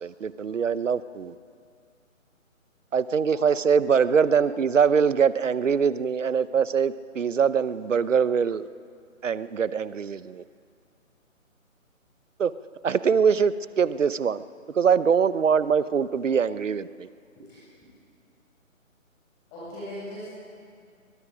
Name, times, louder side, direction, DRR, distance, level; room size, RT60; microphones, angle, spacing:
voice 1, 0.0-1.3 2.9-8.7 9.2-10.4 12.4-12.5 12.8-14.4 14.8-17.1, right 6 dB, 65° right, 16 dB, 0.9 m, -23 dB
voice 2, 19.5-20.3, equal, 15° left, -10 dB, 7.1 m, -39 dB
27.5 x 23.0 x 5.1 m, 2.3 s
figure-of-eight pair, 155°, 41 cm